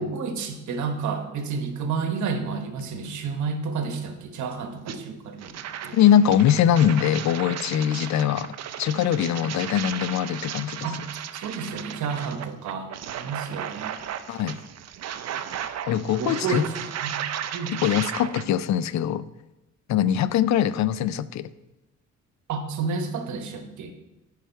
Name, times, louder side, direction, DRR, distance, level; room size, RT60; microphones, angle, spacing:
voice 1, 0.0-6.0 10.8-11.0 11.3-14.0 16.2-17.1 17.5-17.8 22.5-23.9, right 5 dB, 75° right, 6 dB, 1.2 m, -30 dB
sound 1, 4.9-5.0 5.4-18.4, right 10 dB, 60° right, 0.6 m, -35 dB
voice 2, 5.9-8.5 8.8-10.9 14.3-14.6 15.9-16.6 17.8-19.2 19.9-21.5, left 10 dB, 65° left, 17 dB, 0.5 m, -22 dB
9.4 x 5.0 x 4.6 m, 1.0 s
cardioid pair, 90°, 30 cm